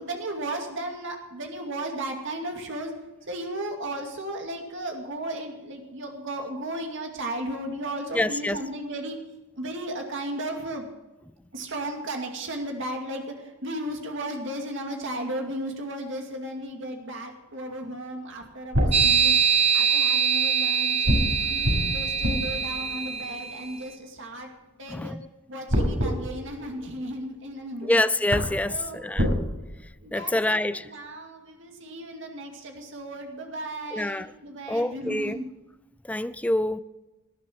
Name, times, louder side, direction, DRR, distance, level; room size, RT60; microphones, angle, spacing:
voice 1, 0.0-2.9 3.3-9.2 9.6-10.9 11.5-19.4 19.7-21.1 21.5-24.5 24.8-25.2 25.5-28.0 28.7-29.0 30.0-35.5, right 1 dB, 60° right, 2.4 m, -35 dB
voice 2, 8.1-8.6 24.9-25.2 27.8-29.3 30.1-30.9 33.9-34.3 34.7-35.4 36.1-36.8, left 1 dB, 5° left, 0.4 m, -26 dB
sound 1, 18.3-19.9 21.0-24.4 25.7-27.6 27.9-28.0 28.3-29.4, equal, 90° right, 5.6 m, -28 dB
sound 2, 18.9-23.6, right 7 dB, 30° right, 1.1 m, -23 dB
19.0 x 11.0 x 4.5 m
head